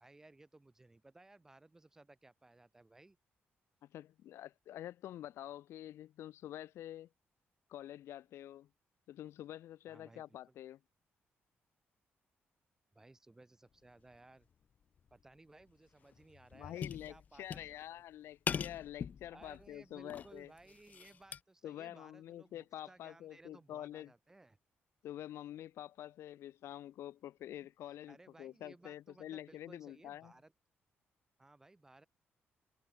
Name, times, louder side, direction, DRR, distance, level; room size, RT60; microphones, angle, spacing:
voice 1, 0.0-3.2 9.9-10.5 12.9-14.5 15.1-18.0 19.3-24.6 27.9-30.5 31.4-32.1, right 2 dB, 10° right, 8.0 m, -60 dB
voice 2, 3.8-7.1 7.7-8.7 9.1-10.8 16.5-20.5 21.6-24.1 25.0-30.3, left 12 dB, 85° left, 3.6 m, -47 dB
sound 1, 15.0-15.2 15.6-15.7 16.1-18.0 18.5-19.7 20.1-21.4, left 7 dB, 40° left, 0.4 m, -42 dB
cardioid pair, 165°, 4 cm